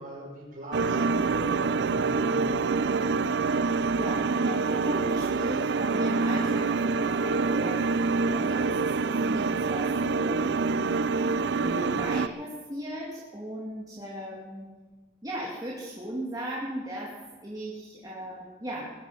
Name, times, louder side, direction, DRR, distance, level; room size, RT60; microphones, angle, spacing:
voice 1, 0.0-3.1, equal, 50° right, -3 dB, 5.7 m, -41 dB
sound 1, 0.7-12.3, right 4 dB, 80° right, 0.5 m, -26 dB
voice 2, 4.0-10.8 11.6-14.7 15.2-18.9, equal, 20° right, -5 dB, 2.4 m, -37 dB
21.5 x 10.5 x 5.6 m, 1.3 s
head